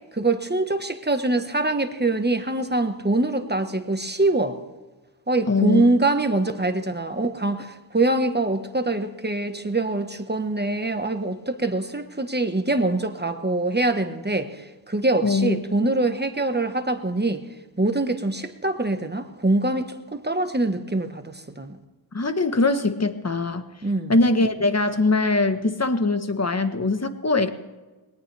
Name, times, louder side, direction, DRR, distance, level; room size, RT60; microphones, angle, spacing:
voice 1, 0.1-4.6 5.3-17.4 17.8-21.8 23.8-24.1, right 2 dB, 20° right, 7 dB, 1.4 m, -24 dB
voice 2, 5.4-5.8 15.2-15.6 22.1-23.7 24.1-27.5, left 3 dB, 30° left, 8 dB, 1.4 m, -22 dB
21.0 x 19.0 x 3.5 m, 1.2 s
wide cardioid pair, 70°, 48 cm